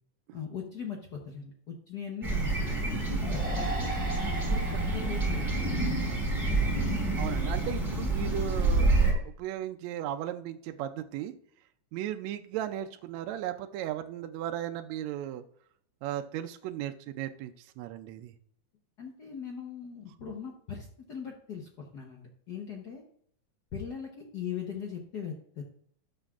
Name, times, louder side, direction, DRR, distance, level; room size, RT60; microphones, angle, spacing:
voice 1, 0.3-3.9 4.4-4.6 4.9-5.9 6.5-6.9 19.0-23.0 23.7-25.6, left 7 dB, 70° left, 0 dB, 0.9 m, -40 dB
sound 1, 2.2-9.1, right 2 dB, 10° right, 3.3 m, -28 dB
sound 2, 3.2-6.7, equal, 60° right, 0.3 m, -40 dB
voice 2, 7.2-11.3 11.9-15.4 16.0-18.3, right 11 dB, 80° right, 7 dB, 1.8 m, -36 dB
13.0 x 8.2 x 2.4 m, 0.64 s
omnidirectional pair, 3.3 m